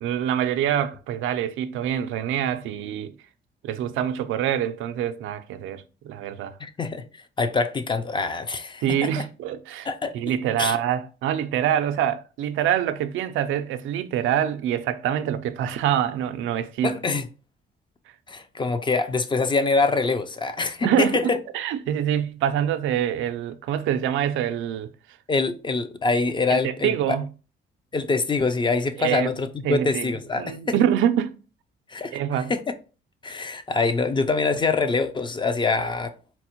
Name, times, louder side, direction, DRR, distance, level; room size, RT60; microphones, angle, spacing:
voice 1, 0.0-3.1 3.6-6.6 8.8-9.9 10.1-16.9 20.8-24.9 26.5-27.3 29.0-29.3 29.6-31.3 32.1-32.5, right 10 dB, 80° right, 0.4 m, -25 dB
voice 2, 6.6-9.2 9.9-10.1 10.6-10.8 16.8-17.3 18.3-21.4 25.3-27.2 27.9-30.6 31.9-32.6 33.2-36.1, left 4 dB, 25° left, 0.4 m, -25 dB
4.2 x 2.1 x 2.9 m
cardioid pair, 90°, 20 cm